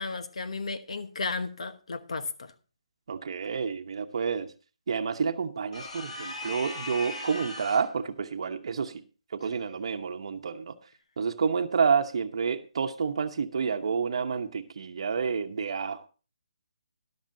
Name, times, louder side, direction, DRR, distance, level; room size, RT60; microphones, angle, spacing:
voice 1, 0.0-2.5, left 3 dB, 70° left, 1.1 m, -34 dB
voice 2, 3.1-4.5 4.9-9.0 9.3-10.8 11.2-16.1, right 6 dB, 60° right, 1.0 m, -29 dB
sound 1, 5.7-8.0, left 2 dB, 85° left, 5.1 m, -38 dB
13.5 x 11.0 x 2.7 m
hypercardioid pair, 155°, 3 cm